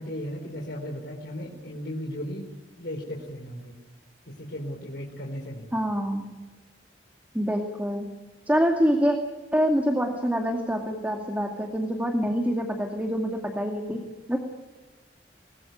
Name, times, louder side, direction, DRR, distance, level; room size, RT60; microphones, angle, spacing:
voice 1, 0.0-2.5 2.8-3.8 4.3-5.7, equal, 70° left, -1 dB, 4.2 m, -36 dB
voice 2, 5.7-6.4 7.3-8.1 8.5-9.2 9.5-14.0 14.3-14.4, equal, 10° right, 2 dB, 2.3 m, -25 dB
24.0 x 20.0 x 9.5 m, 1.2 s
head